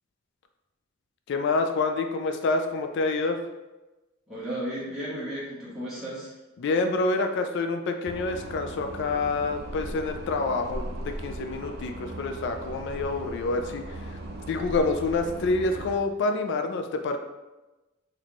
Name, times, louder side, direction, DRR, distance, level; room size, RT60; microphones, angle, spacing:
voice 1, 1.3-3.4 6.6-14.2 14.5-17.2, left 3 dB, 60° left, 6 dB, 0.3 m, -27 dB
voice 2, 4.3-6.3, right 1 dB, ahead, -11 dB, 1.2 m, -34 dB
sound 1, 8.1-16.0, right 1 dB, 55° right, 0.4 m, -38 dB
4.2 x 2.8 x 3.0 m, 1.1 s
head